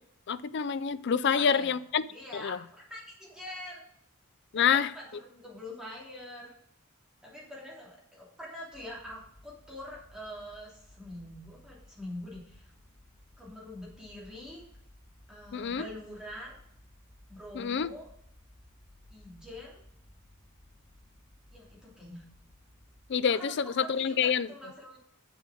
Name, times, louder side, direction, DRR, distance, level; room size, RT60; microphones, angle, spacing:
voice 1, 0.3-2.0 2.3-2.6 4.5-4.9 15.5-15.9 17.5-17.9 23.1-24.5, left 7 dB, 55° left, 0.4 m, -27 dB
voice 2, 1.1-1.7 2.1-3.8 4.5-6.5 7.2-12.7 13.4-14.6 15.3-16.6 17.3-18.1 19.1-19.8 21.5-22.2 23.3-25.0, left 1 dB, 5° right, 3.1 m, -45 dB
sound 1, 8.7-23.1, left 1 dB, 35° left, 3.8 m, -58 dB
7.5 x 7.1 x 6.2 m
head